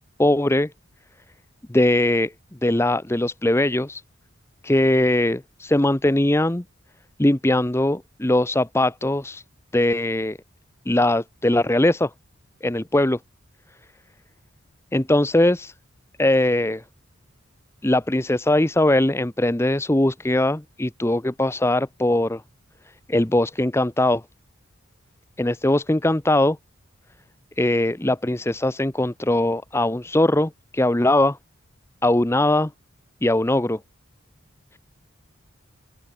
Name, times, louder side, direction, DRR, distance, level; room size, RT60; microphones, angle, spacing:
voice 1, 0.2-0.7 1.7-2.3 2.6-4.0 4.6-6.6 7.2-9.4 9.7-10.4 10.9-12.1 12.6-13.2 14.9-15.7 16.2-16.8 17.8-22.4 23.1-24.2 25.4-26.6 27.6-31.4 32.0-32.7 33.2-33.8, left 1 dB, 10° left, 0.7 m, -20 dB
open air
head